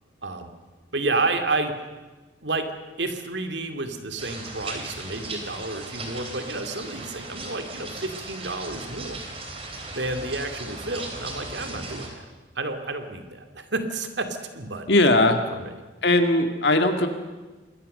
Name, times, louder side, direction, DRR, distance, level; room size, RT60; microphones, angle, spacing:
voice 1, 0.9-1.7 2.4-2.7 3.0-9.2 10.0-12.2 12.6-14.3 14.5-14.9 15.5-15.7, right 2 dB, 65° right, 7 dB, 2.4 m, -30 dB
sound 1, 4.2-12.1, right 2 dB, 30° right, 3.8 m, -37 dB
voice 2, 14.9-15.4 16.0-17.1, left 2 dB, 60° left, 6 dB, 2.0 m, -19 dB
26.5 x 20.5 x 6.7 m, 1.2 s
head